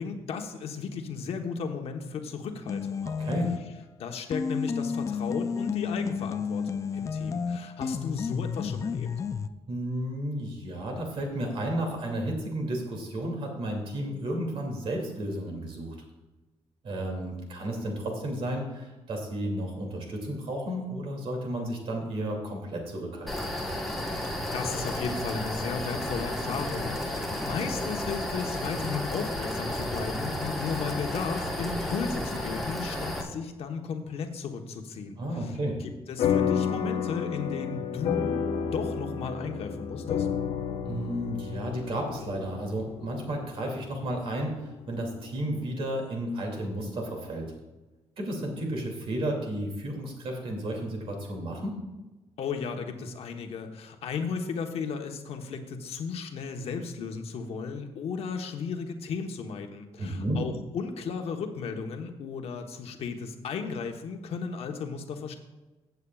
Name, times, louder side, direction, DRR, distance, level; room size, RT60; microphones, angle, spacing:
voice 1, 0.0-3.1 4.0-9.2 24.2-35.6 35.8-38.4 38.6-40.3 52.4-65.4, left 5 dB, 70° left, 5 dB, 1.1 m, -35 dB
sound 1, 2.7-3.8 4.3-9.5, left 5 dB, 30° left, 0.3 m, -31 dB
voice 2, 3.0-3.5 9.7-16.0 16.8-23.5 35.2-35.7 40.9-44.5 44.9-47.5 48.2-51.8 60.0-60.4, right 1 dB, 60° right, 1 dB, 2.5 m, -32 dB
sound 2, 23.3-33.2, left 1 dB, ahead, 1.2 m, -32 dB
sound 3, 36.2-44.9, left 7 dB, 90° left, 0.8 m, -31 dB
16.0 x 8.2 x 2.4 m, 1.1 s
wide cardioid pair, 170°, 11 cm